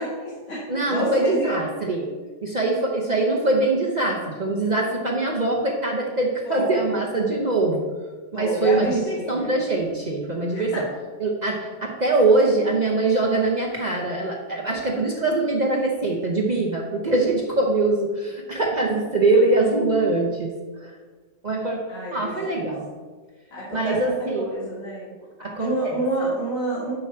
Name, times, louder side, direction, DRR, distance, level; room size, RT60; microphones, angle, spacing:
voice 1, 0.0-1.5 6.4-6.9 8.3-9.6 10.5-10.6 21.9-22.7 23.5-25.1 25.4-26.9, right 1 dB, 35° left, -7 dB, 2.6 m, -28 dB
voice 2, 0.7-2.1 2.4-7.8 8.3-10.8 11.2-20.5 21.4-21.8 22.1-22.9 23.7-24.4 25.4-26.0, right 2 dB, 55° right, -2 dB, 0.4 m, -23 dB
7.6 x 4.6 x 5.9 m, 1.4 s
omnidirectional pair, 1.9 m